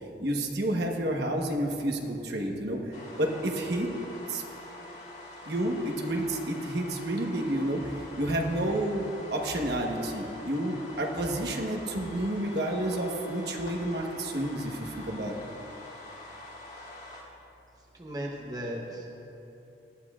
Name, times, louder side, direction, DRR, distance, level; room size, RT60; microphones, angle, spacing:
voice 1, 0.2-2.8 3.2-3.9 4.3-4.4 5.5-15.3, right 1 dB, 65° right, 1 dB, 1.2 m, -30 dB
sound 1, 2.9-17.2, left 2 dB, 60° left, 2.9 m, -45 dB
voice 2, 17.9-19.1, equal, 20° right, -1 dB, 0.9 m, -36 dB
19.5 x 13.0 x 2.5 m, 2.9 s
head